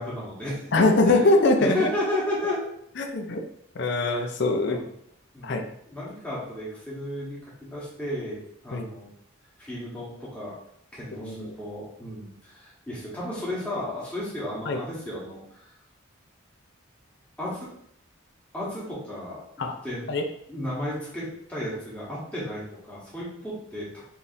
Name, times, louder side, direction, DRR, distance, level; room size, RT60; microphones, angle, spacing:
voice 1, 0.0-0.6 1.0-1.2 1.6-2.6 3.9-4.3 4.7-4.8 5.3-9.1 9.6-10.5 10.9-15.7 17.4-17.7 18.5-19.4 19.8-20.1 20.5-24.0, left 1 dB, 5° left, -8 dB, 1.2 m, -33 dB
voice 2, 0.7-1.9 3.0-3.4 3.8-4.8 5.4-5.6 8.7-8.9 11.2-11.5 14.7-14.8 19.6-19.7 20.1-20.2, left 2 dB, 55° left, 4 dB, 0.5 m, -22 dB
4.6 x 3.4 x 2.6 m, 0.70 s
head